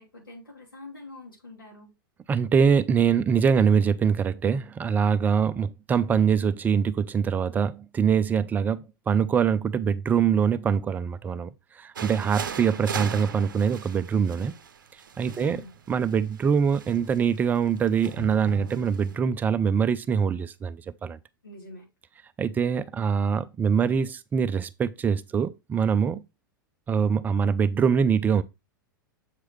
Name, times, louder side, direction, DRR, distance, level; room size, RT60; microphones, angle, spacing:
voice 1, 0.0-1.9 15.4-15.7 21.4-21.9, left 2 dB, 80° left, 3.0 m, -45 dB
voice 2, 2.3-11.5 11.8-14.5 15.2-15.6 15.9-21.2 22.4-26.2 26.9-28.4, right 7 dB, 15° right, 0.4 m, -24 dB
sound 1, 12.0-19.2, right 6 dB, 65° right, 0.6 m, -38 dB
7.4 x 4.7 x 3.1 m
figure-of-eight pair, 100°, 11 cm